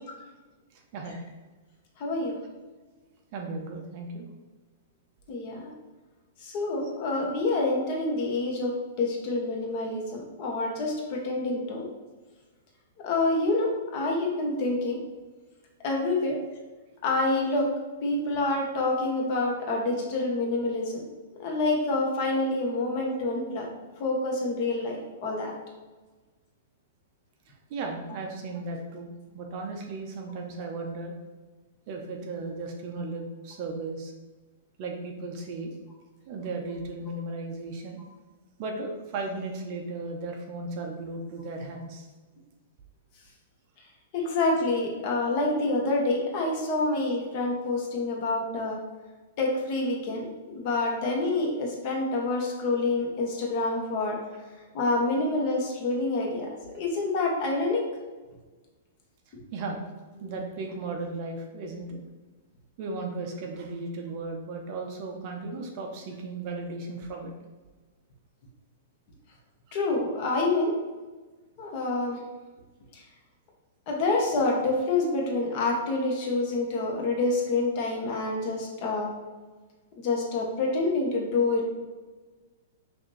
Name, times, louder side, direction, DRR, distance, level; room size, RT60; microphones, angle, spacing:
voice 1, 2.0-2.4 5.3-5.7 6.4-8.7 9.0-11.8 13.0-15.0 15.8-16.4 17.0-17.7 18.0-21.0 21.4-23.7 24.0-25.5 44.1-48.8 49.4-50.3 50.5-54.2 54.7-56.5 56.7-57.8 60.2-60.3 69.7-70.7 71.6-72.2 72.9-73.0 73.9-79.1 80.0-81.7, left 2 dB, 35° left, 0 dB, 1.0 m, -27 dB
voice 2, 3.3-4.3 27.5-31.1 31.9-34.1 34.8-35.7 36.3-38.0 38.6-42.1 59.5-59.9 60.2-62.0 62.8-67.3, right 3 dB, 35° right, 2 dB, 0.6 m, -36 dB
6.0 x 2.6 x 3.2 m, 1.3 s
hypercardioid pair, 165°, 0 cm